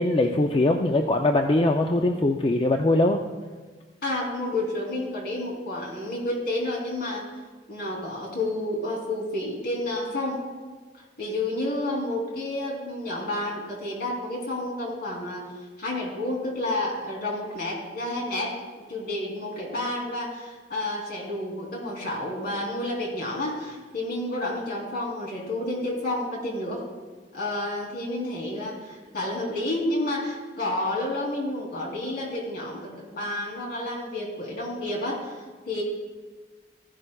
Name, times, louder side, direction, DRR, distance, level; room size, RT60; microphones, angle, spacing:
voice 1, 0.0-3.2, left 2 dB, 30° left, 4 dB, 0.4 m, -22 dB
voice 2, 4.0-7.2 7.7-10.4 10.9-15.4 15.8-18.6 18.9-26.8 27.3-35.8, left 1 dB, 55° left, -2 dB, 3.0 m, -30 dB
14.5 x 11.0 x 2.3 m, 1.4 s
head